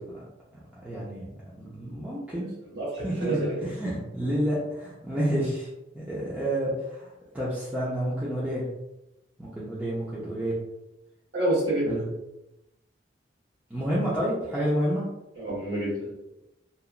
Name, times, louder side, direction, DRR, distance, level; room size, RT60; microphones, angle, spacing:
voice 1, 0.8-1.3 1.6-2.5 3.0-5.7 5.9-7.1 7.3-8.6 9.4-10.6 11.9-12.1 13.7-15.1, equal, 10° right, -8 dB, 0.5 m, -29 dB
voice 2, 2.7-3.7 11.3-12.0 15.4-16.1, right 1 dB, 70° right, -7 dB, 1.3 m, -28 dB
2.9 x 2.3 x 2.4 m, 0.92 s
head